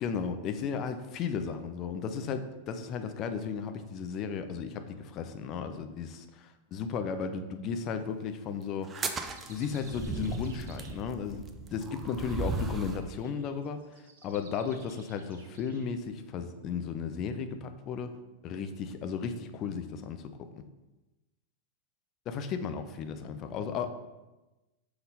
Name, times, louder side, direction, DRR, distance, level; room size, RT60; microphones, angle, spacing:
voice 1, 0.0-9.1 9.5-18.1 18.4-20.5 22.3-23.9, left 6 dB, 35° left, 8 dB, 0.6 m, -35 dB
sound 1, 7.8-8.0 8.8-11.3 11.7-15.9, right 4 dB, 60° right, 0.9 m, -57 dB
sound 2, 8.8-13.1, right 4 dB, 20° right, 0.6 m, -36 dB
5.8 x 5.5 x 4.0 m, 1.1 s
figure-of-eight pair, 90°, 0 cm